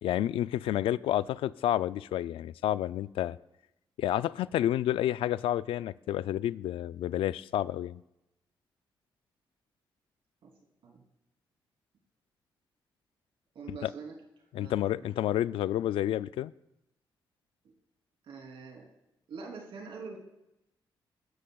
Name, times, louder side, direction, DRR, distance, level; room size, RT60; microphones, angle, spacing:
voice 1, 0.0-3.4 4.0-8.0 13.8-13.9 14.5-16.5, left 12 dB, 90° left, 17 dB, 0.3 m, -30 dB
voice 2, 13.5-14.1 14.6-15.2 18.2-18.9 19.3-20.2, right 4 dB, 75° right, 0 dB, 3.2 m, -44 dB
21.5 x 13.0 x 2.3 m, 0.92 s
cardioid pair, 75°, 9 cm